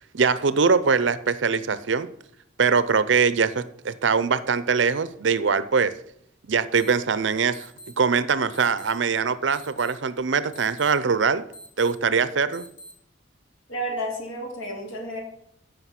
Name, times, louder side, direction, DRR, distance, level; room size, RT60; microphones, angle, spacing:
voice 1, 0.1-2.1 2.6-5.9 6.5-7.7 8.0-11.4 11.8-12.6, right 5 dB, 70° right, 15 dB, 0.6 m, -22 dB
sound 1, 6.8-6.9 7.5-7.9 8.5-8.9 9.5-9.9 10.5-10.9 11.5-11.9 12.5-12.9, equal, 65° left, 3.6 m, -44 dB
voice 2, 13.7-15.2, equal, 90° left, 1 dB, 3.1 m, -31 dB
14.0 x 5.1 x 5.8 m, 0.73 s
head